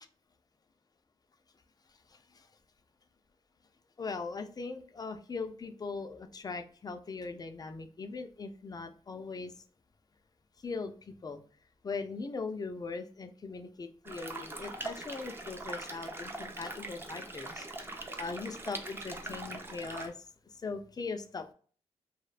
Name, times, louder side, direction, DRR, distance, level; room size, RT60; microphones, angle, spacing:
voice 1, 2.1-2.5 4.0-9.5 10.6-11.4 11.8-20.1 20.5-21.5, left 4 dB, 35° left, 8 dB, 0.4 m, -40 dB
sound 1, 14.0-20.1, right 2 dB, 20° right, 0.5 m, -42 dB
2.6 x 2.1 x 2.3 m, 0.43 s
cardioid pair, 75°, 12 cm